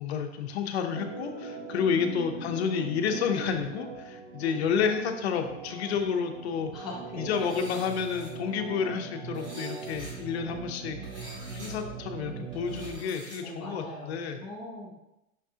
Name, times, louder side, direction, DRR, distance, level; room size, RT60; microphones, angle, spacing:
voice 1, 0.0-6.7 7.2-11.0 11.5-14.4, left 6 dB, 50° left, 5 dB, 0.7 m, -30 dB
Organ, 0.9-13.0, right 4 dB, 45° right, 0.6 m, -41 dB
voice 2, 1.8-2.3 4.4-4.8 6.7-7.6 13.4-14.9, left 1 dB, ahead, -13 dB, 0.4 m, -41 dB
sound 1, 7.3-8.3 9.3-10.1 11.0-11.7 12.5-13.4, equal, 15° right, 1.5 m, -47 dB
5.9 x 5.9 x 2.8 m, 0.89 s
supercardioid pair, 170°, 41 cm